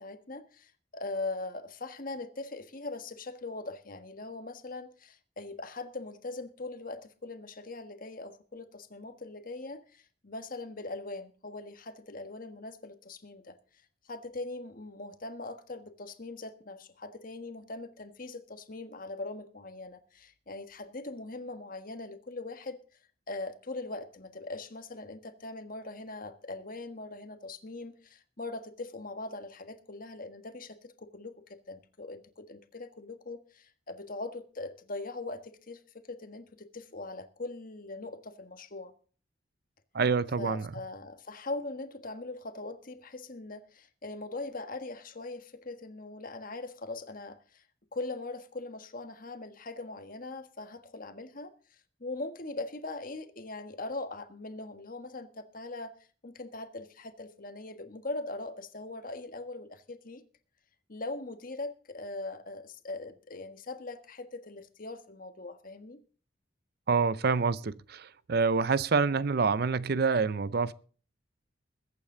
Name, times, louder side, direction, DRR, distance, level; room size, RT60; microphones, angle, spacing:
voice 1, 0.0-13.6 14.0-22.8 23.3-38.9 40.4-47.6 47.9-56.0 56.2-60.2 60.9-66.0, left 2 dB, 45° left, 1.5 m, -41 dB
voice 2, 39.9-40.7 66.9-70.7, right 4 dB, 55° right, 0.5 m, -27 dB
22.0 x 8.6 x 3.9 m
head